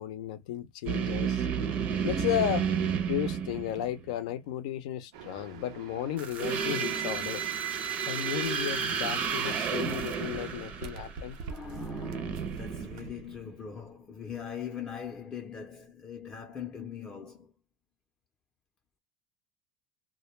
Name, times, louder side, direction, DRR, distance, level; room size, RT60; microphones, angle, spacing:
voice 1, 0.0-1.5 2.0-2.7 3.1-7.4 8.1-11.4, left 11 dB, 85° left, 0.5 m, -34 dB
sound 1, 0.9-4.1 6.2-13.5, right 7 dB, 45° right, 0.6 m, -32 dB
sound 2, 5.1-13.1, right 6 dB, 85° right, 0.5 m, -47 dB
voice 2, 11.4-17.5, left 7 dB, 25° left, 0.5 m, -41 dB
2.2 x 2.1 x 3.1 m
supercardioid pair, 140°, 4 cm